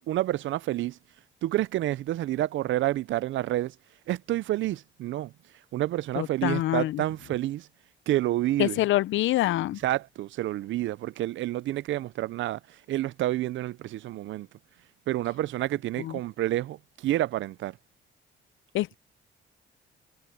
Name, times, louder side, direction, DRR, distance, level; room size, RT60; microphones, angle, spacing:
voice 1, 0.1-1.0 1.4-3.7 4.1-5.3 5.7-7.7 8.1-8.8 9.8-14.5 15.1-17.8, right 14 dB, 75° right, 0.5 m, -29 dB
voice 2, 6.2-7.0 8.6-9.8 16.0-16.2 18.7-19.0, left 15 dB, 80° left, 0.6 m, -26 dB
cardioid pair, 90°, 20 cm